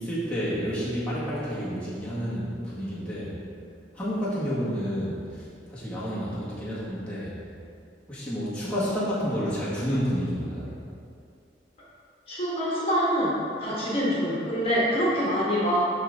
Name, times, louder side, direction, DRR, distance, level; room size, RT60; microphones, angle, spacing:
voice 1, 0.0-3.4 3.9-7.4 8.1-10.7, equal, 5° left, -10 dB, 1.7 m, -30 dB
voice 2, 12.3-13.3 13.6-15.8, equal, 35° left, -7 dB, 1.5 m, -25 dB
11.5 x 4.0 x 3.6 m, 2.5 s
head